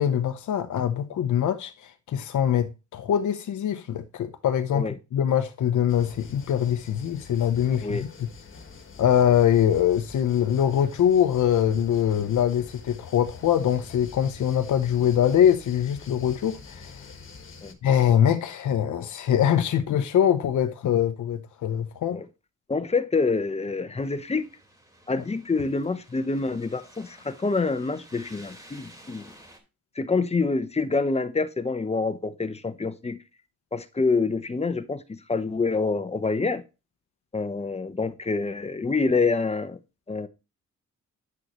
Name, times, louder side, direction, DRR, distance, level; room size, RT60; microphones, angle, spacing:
voice 1, 0.0-8.3 9.0-17.0 17.8-22.2, left 9 dB, 75° left, 0.9 m, -23 dB
sound 1, 5.9-17.7, left 5 dB, 40° left, 1.5 m, -46 dB
voice 2, 22.7-24.5 25.1-29.3 29.9-33.2 33.7-36.6 37.3-39.8 40.1-40.3, left 4 dB, 20° left, 0.9 m, -26 dB
sound 2, 24.0-29.6, right 1 dB, 10° right, 2.8 m, -52 dB
9.6 x 6.5 x 3.0 m
cardioid pair, 105°, 30 cm